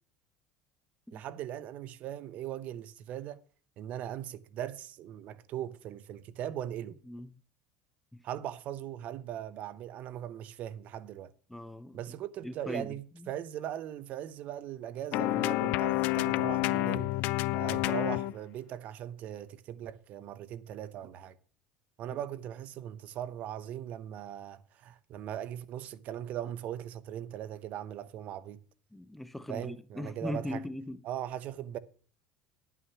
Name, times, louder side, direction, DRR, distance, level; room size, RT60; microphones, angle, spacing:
voice 1, 1.1-3.4 3.8-7.0 8.2-11.3 11.9-17.1 17.5-21.4 22.0-28.6 29.5-30.6 31.0-31.8, right 11 dB, 55° right, 0.8 m, -39 dB
voice 2, 11.5-12.0 12.4-13.3 22.1-22.2 28.9-31.0, left 1 dB, 5° left, 0.5 m, -40 dB
sound 1, 15.1-18.3, left 18 dB, 65° left, 0.5 m, -29 dB
11.0 x 5.8 x 7.2 m
supercardioid pair, 110°, 3 cm